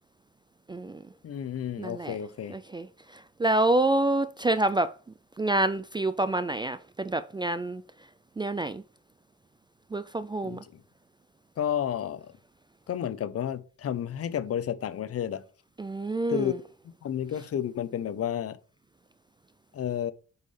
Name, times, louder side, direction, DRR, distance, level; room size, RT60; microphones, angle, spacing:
voice 1, 0.7-1.0 1.8-2.2 2.5-4.9 5.4-7.8 8.4-8.8 9.9-10.6 15.8-16.6, right 2 dB, 15° right, 0.4 m, -27 dB
voice 2, 1.2-2.5 10.4-10.6 11.6-12.3 12.9-15.4 16.3-16.5 16.8-18.6 19.7-20.1, left 9 dB, 50° left, 0.7 m, -31 dB
8.1 x 5.6 x 3.3 m
cardioid pair, 90°, 30 cm